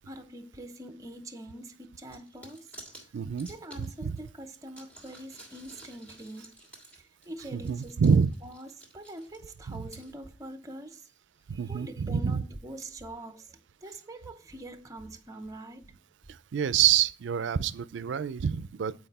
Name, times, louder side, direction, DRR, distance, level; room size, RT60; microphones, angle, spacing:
voice 1, 0.1-2.7 3.5-6.6 7.3-11.0 11.7-15.9, right 1 dB, 15° right, 0.6 m, -44 dB
sound 1, 2.0-4.3 4.7-10.1, right 1 dB, 10° left, 1.7 m, -51 dB
voice 2, 3.1-3.5 3.8-4.2 7.5-8.3 9.7-9.8 11.5-12.4 16.3-18.9, right 7 dB, 75° right, 0.4 m, -27 dB
7.8 x 4.6 x 4.1 m
head